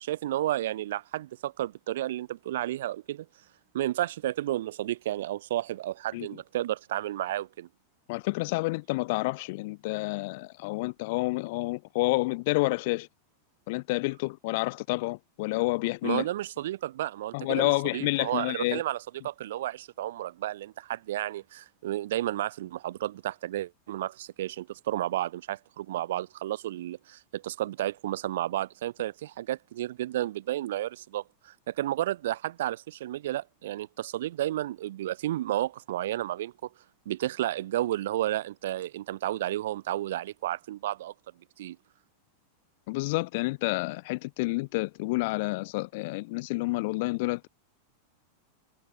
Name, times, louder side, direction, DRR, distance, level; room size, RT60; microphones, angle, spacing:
voice 1, 0.0-3.3 3.7-7.7 16.0-36.7 37.1-41.1 41.6-41.8, right 14 dB, 55° right, 7.2 m, -32 dB
voice 2, 8.1-13.1 13.7-16.3 17.3-18.8 42.9-47.5, left 23 dB, 50° left, 1.7 m, -29 dB
figure-of-eight pair, 90°, 0 cm